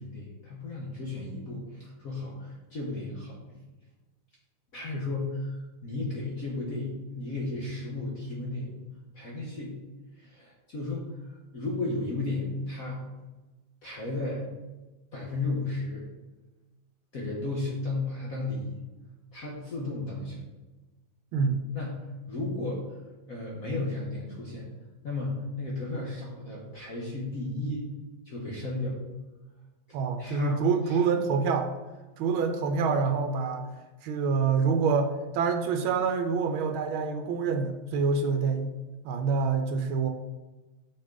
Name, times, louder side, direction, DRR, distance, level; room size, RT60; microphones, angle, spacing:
voice 1, 0.0-3.4 4.7-8.7 9.1-9.8 10.2-13.1 13.8-14.5 15.1-16.1 17.1-18.8 19.3-20.4 21.7-23.0 23.3-24.7 25.0-27.9 28.2-29.0 30.2-31.1, left 2 dB, 50° left, -3 dB, 1.4 m, -34 dB
voice 2, 21.3-21.7 29.9-31.7 32.2-33.7 34.0-38.7 39.0-40.1, right 5 dB, 85° right, 6 dB, 1.4 m, -26 dB
6.5 x 6.5 x 3.9 m, 1.2 s
omnidirectional pair, 2.2 m